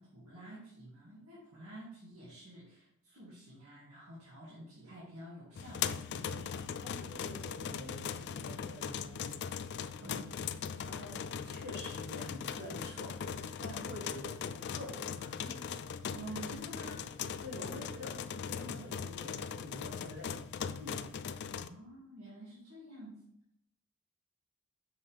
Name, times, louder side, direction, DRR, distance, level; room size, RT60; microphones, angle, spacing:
voice 1, 0.0-6.5 10.0-10.3 16.1-17.0 21.5-23.2, right 1 dB, 90° right, -8 dB, 2.2 m, -49 dB
sound 1, 5.6-21.7, left 7 dB, 50° left, 0.3 m, -40 dB
voice 2, 6.8-9.3 10.0-10.2 10.8-15.6 17.4-20.4 20.7-21.1, left 1 dB, 50° right, -4 dB, 2.4 m, -47 dB
6.1 x 5.6 x 3.4 m, 0.74 s
head